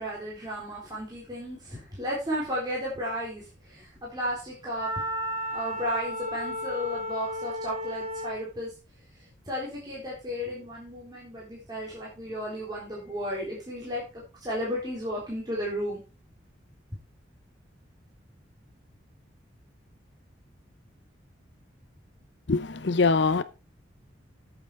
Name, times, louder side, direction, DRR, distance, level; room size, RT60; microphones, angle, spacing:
voice 1, 0.0-5.0 5.5-8.7 9.1-16.0, equal, 20° right, 3.9 m, -34 dB
Wind instrument woodwind instrument, 4.7-8.5, equal, 60° right, 5.0 m, -33 dB
voice 2, 22.5-23.4, left 4 dB, 65° left, 0.7 m, -23 dB
8.9 x 8.0 x 4.8 m
head